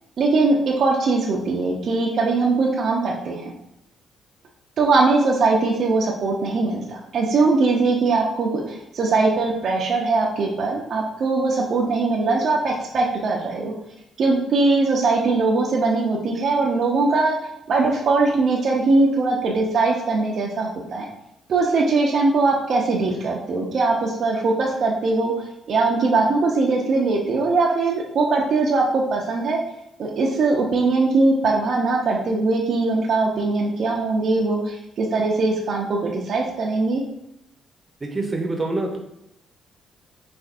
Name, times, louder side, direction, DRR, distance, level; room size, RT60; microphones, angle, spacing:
voice 1, 0.2-3.4 4.8-13.7 14.2-17.4 17.7-21.1 21.5-29.6 30.0-37.0, right 3 dB, 60° right, -1 dB, 0.7 m, -21 dB
voice 2, 38.0-39.0, right 2 dB, 25° right, 1 dB, 0.8 m, -25 dB
6.7 x 2.5 x 2.5 m, 0.79 s
cardioid pair, 90°, 0 cm